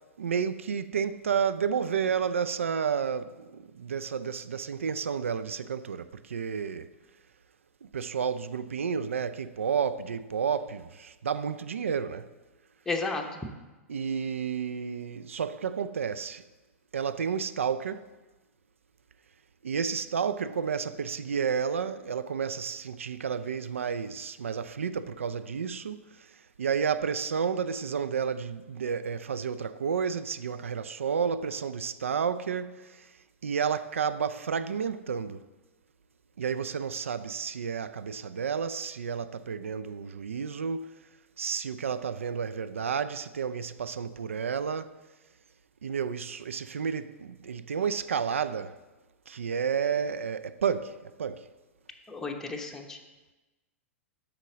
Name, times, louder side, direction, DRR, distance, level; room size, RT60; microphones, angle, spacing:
voice 1, 0.2-6.9 7.8-12.3 13.9-16.4 16.9-18.1 19.6-26.0 26.6-33.1 33.4-35.4 36.4-41.0 41.4-45.0 45.8-48.7 49.3-51.5, right 6 dB, 70° right, 0.3 m, -31 dB
voice 2, 12.9-13.4 52.1-53.0, left 3 dB, 5° left, 0.8 m, -33 dB
8.2 x 5.8 x 3.9 m
figure-of-eight pair, 100°, 7 cm